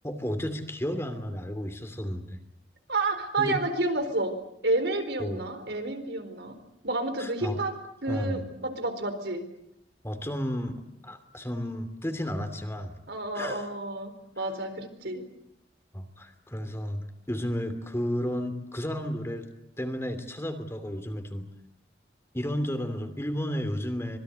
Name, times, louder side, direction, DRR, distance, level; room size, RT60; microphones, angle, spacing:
voice 1, 0.0-2.4 3.4-3.6 5.2-5.5 7.2-7.6 8.1-8.4 10.0-13.0 13.3-13.6 15.9-19.5 19.8-21.5 22.3-24.2, equal, 15° left, 8 dB, 2.8 m, -32 dB
voice 2, 2.9-4.4 4.6-6.5 6.8-7.7 8.0-9.4 13.1-15.2, right 2 dB, 80° right, 7 dB, 4.3 m, -30 dB
26.0 x 22.0 x 8.2 m, 0.79 s
head